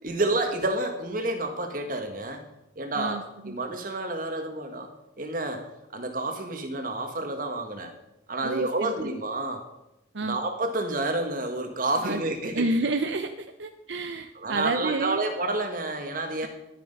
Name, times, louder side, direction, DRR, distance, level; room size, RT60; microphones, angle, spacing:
voice 1, 0.0-2.4 2.7-4.9 5.2-5.7 5.9-7.9 8.3-9.6 10.2-12.7 14.3-16.5, right 2 dB, 50° right, 5 dB, 1.7 m, -29 dB
voice 2, 2.9-3.6 8.4-8.9 10.1-10.4 12.0-12.2 12.5-15.2 16.4-16.5, right 2 dB, 80° right, 7 dB, 0.7 m, -30 dB
12.0 x 9.8 x 5.3 m, 0.87 s
head